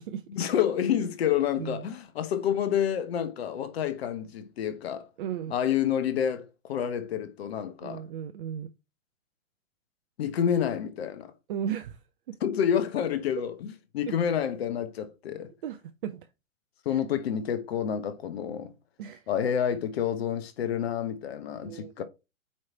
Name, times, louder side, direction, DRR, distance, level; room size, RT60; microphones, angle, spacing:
voice 1, 0.3-5.1 5.5-8.0 10.2-11.3 12.4-15.5 16.8-18.7 19.3-22.0, left 9 dB, 50° left, 1.1 m, -28 dB
voice 2, 5.2-5.5 7.8-8.7 11.5-12.0 12.3-12.4 14.1-14.2 15.6-16.2 16.9-17.0 19.0-19.2 21.6-22.0, right 9 dB, 40° right, 0.6 m, -35 dB
8.7 x 3.2 x 4.3 m
figure-of-eight pair, 115°, 40 cm